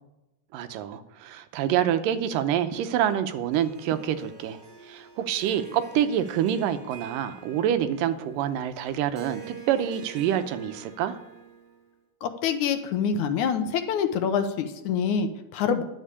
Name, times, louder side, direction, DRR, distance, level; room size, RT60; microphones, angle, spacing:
voice 1, 0.5-4.6 4.9-11.2, right 10 dB, 90° right, 10 dB, 2.5 m, -27 dB
Harp, 3.5-11.9, right 7 dB, 40° right, 1.3 m, -46 dB
voice 2, 12.2-15.8, left 7 dB, 70° left, 8 dB, 2.1 m, -26 dB
11.0 x 7.5 x 8.4 m, 0.94 s
omnidirectional pair, 3.8 m